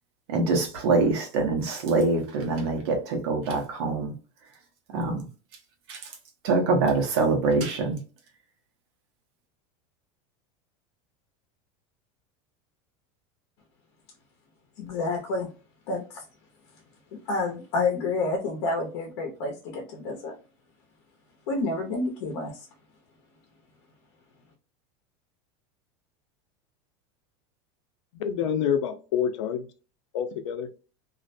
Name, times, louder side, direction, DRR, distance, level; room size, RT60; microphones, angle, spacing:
voice 1, 0.3-4.1 4.9-5.2 5.9-6.0 6.4-8.0, right 3 dB, 60° right, 0.9 m, -24 dB
voice 2, 14.8-15.5 15.9-16.2 17.3-20.3 21.5-22.7, left 3 dB, 55° left, 0.7 m, -29 dB
voice 3, 28.1-29.7 30.1-30.7, left 8 dB, 90° left, 0.5 m, -27 dB
2.5 x 2.1 x 2.5 m
supercardioid pair, 175°, 15 cm